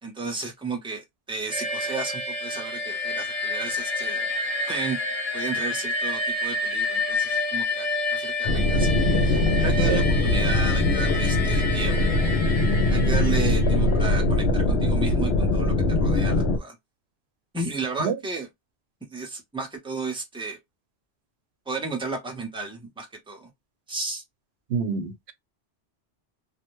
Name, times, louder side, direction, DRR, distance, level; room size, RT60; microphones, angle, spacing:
voice 1, 0.0-4.3 4.7-5.0 5.3-7.9 8.1-12.3 12.9-15.7 16.0-16.8 17.5-18.5 19.1-20.6 21.7-23.5 23.9-24.2, right 3 dB, 5° right, 0.6 m, -33 dB
sound 1, 1.5-13.9, left 2 dB, 35° left, 0.9 m, -29 dB
sound 2, 8.4-16.6, left 2 dB, 80° left, 0.8 m, -22 dB
voice 2, 24.7-25.3, right 6 dB, 75° right, 0.8 m, -26 dB
2.5 x 2.1 x 2.9 m
omnidirectional pair, 1.1 m